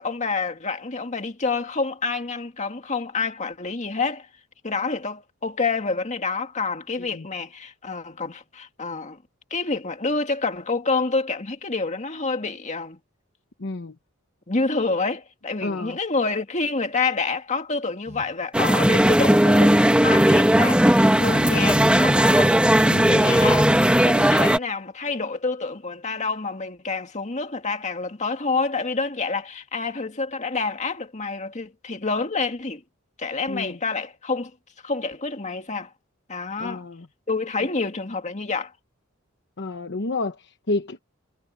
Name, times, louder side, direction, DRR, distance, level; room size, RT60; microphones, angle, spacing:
voice 1, 0.0-4.3 4.6-9.2 9.5-13.0 14.5-22.6 23.1-32.8 33.2-34.5 34.8-35.9 36.3-36.8 37.3-38.7, left 4 dB, 35° left, 2.0 m, -28 dB
voice 2, 13.6-14.0 15.6-16.0 22.9-23.3 33.5-33.8 36.6-37.1 39.6-41.0, left 2 dB, 60° left, 1.1 m, -30 dB
Telephone, 18.1-18.3 19.2-20.3 21.2-22.5 23.2-23.9, equal, 35° right, 3.3 m, -34 dB
sound 1, 18.5-24.6, equal, 5° right, 1.3 m, -17 dB
head